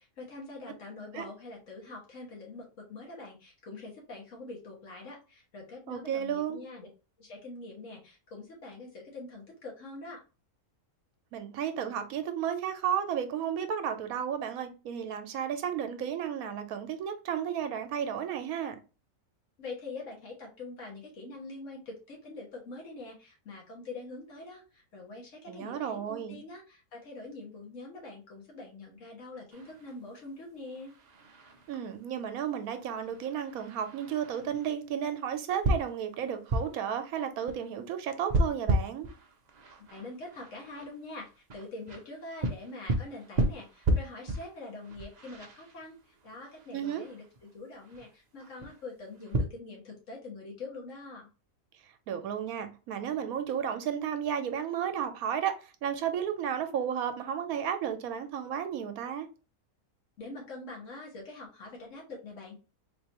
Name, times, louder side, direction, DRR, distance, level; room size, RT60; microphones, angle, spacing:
voice 1, 0.0-6.9 7.2-10.2 19.6-30.9 39.9-41.3 41.5-51.3 60.2-62.6, left 2 dB, 60° left, 1.6 m, -44 dB
voice 2, 5.9-6.6 11.3-18.8 25.5-26.4 31.7-39.1 46.7-47.0 52.1-55.5 55.8-59.3, right 8 dB, 80° right, 1.1 m, -33 dB
sound 1, 29.5-49.5, right 1 dB, 55° right, 0.4 m, -35 dB
4.1 x 2.7 x 2.9 m
omnidirectional pair, 1.5 m